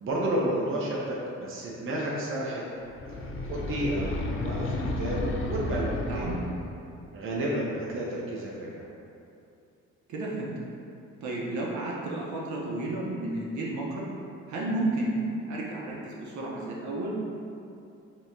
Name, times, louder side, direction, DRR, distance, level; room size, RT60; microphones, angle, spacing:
voice 1, 0.0-2.6 3.5-4.1 4.4-6.4 7.1-8.8, right 1 dB, 45° right, -5 dB, 0.7 m, -31 dB
sound 1, 2.9-6.8, left 2 dB, 45° left, 0.5 m, -32 dB
voice 2, 10.1-10.5 11.2-14.0 14.5-17.1, right 2 dB, 70° right, -4 dB, 0.9 m, -32 dB
5.4 x 2.9 x 2.7 m, 2.6 s
cardioid pair, 90°, 30 cm